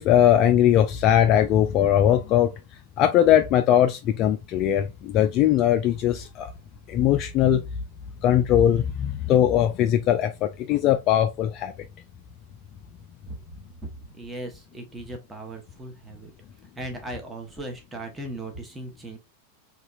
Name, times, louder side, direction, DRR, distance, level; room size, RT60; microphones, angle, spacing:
voice 1, 0.0-2.5 3.0-6.5 6.9-7.6 8.2-11.7, left 10 dB, 35° left, 0.3 m, -20 dB
voice 2, 13.8-16.3 16.7-19.2, right 1 dB, 10° right, 1.0 m, -37 dB
4.2 x 2.9 x 2.5 m
figure-of-eight pair, 90°, 0 cm